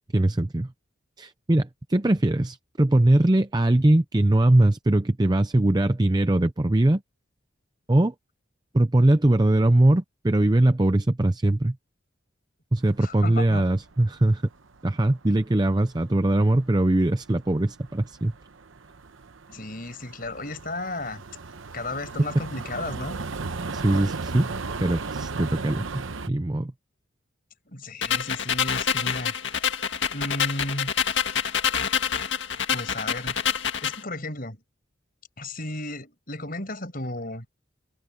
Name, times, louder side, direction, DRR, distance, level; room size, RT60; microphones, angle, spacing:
voice 1, 0.1-0.7 1.2-7.0 7.9-8.1 8.7-11.8 12.7-14.4 14.8-18.3 23.7-24.5 24.8-26.7, right 1 dB, 20° right, 0.6 m, -21 dB
sound 1, 12.8-15.0 15.3-26.3, right 4 dB, 80° right, 1.0 m, -36 dB
voice 2, 13.0-13.6 19.5-21.2 21.7-23.2 27.7-29.3 30.1-30.9 32.7-33.4 33.8-34.6 35.4-37.5, left 2 dB, 45° left, 5.7 m, -34 dB
sound 2, 28.0-34.0, left 8 dB, 65° left, 1.9 m, -26 dB
head